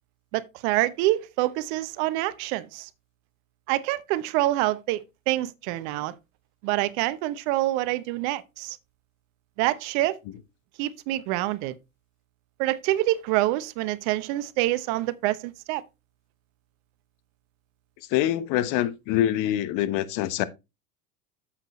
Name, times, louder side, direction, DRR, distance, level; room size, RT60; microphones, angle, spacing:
voice 1, 0.3-2.9 3.7-6.1 6.6-8.8 9.6-10.2 10.8-11.7 12.6-15.8, right 16 dB, 55° right, 0.9 m, -26 dB
voice 2, 18.1-20.4, left 12 dB, 50° left, 1.1 m, -25 dB
8.0 x 7.5 x 3.1 m
hypercardioid pair, 95°, 41 cm